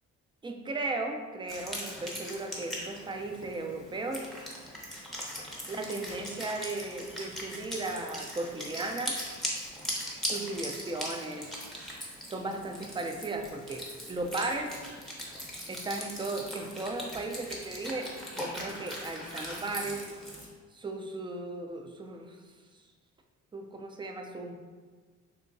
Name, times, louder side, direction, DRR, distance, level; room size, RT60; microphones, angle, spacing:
voice 1, 0.4-4.2 5.7-9.2 10.3-11.5 12.3-14.7 15.7-20.1 20.7-22.4 23.5-24.5, right 2 dB, 15° right, 4 dB, 0.4 m, -36 dB
Wind instrument woodwind instrument, 1.5-20.5, equal, ahead, 0.8 m, -40 dB
3.5 x 2.7 x 2.6 m, 1.5 s
cardioid pair, 90°, 30 cm